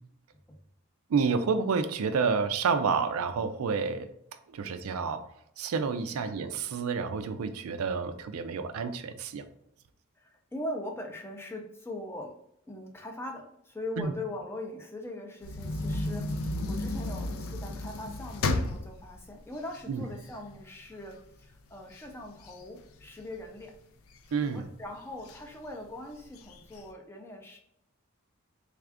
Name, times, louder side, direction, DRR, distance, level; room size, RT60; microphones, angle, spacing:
voice 1, 1.1-4.1 4.5-5.3 5.6-9.4 14.0-14.1 19.9-20.0 24.3-24.7, right 5 dB, 80° right, 9 dB, 0.4 m, -29 dB
voice 2, 6.1-6.5 10.2-12.3 12.7-23.7 24.4-27.6, left 1 dB, 10° left, 2 dB, 0.5 m, -41 dB
sound 1, 15.4-20.6 21.1-21.2 21.5-23.6 24.1-24.7 25.3-25.4 25.7-25.8 26.2-26.8, left 2 dB, 75° left, 0.4 m, -33 dB
3.5 x 2.4 x 3.4 m, 0.76 s
head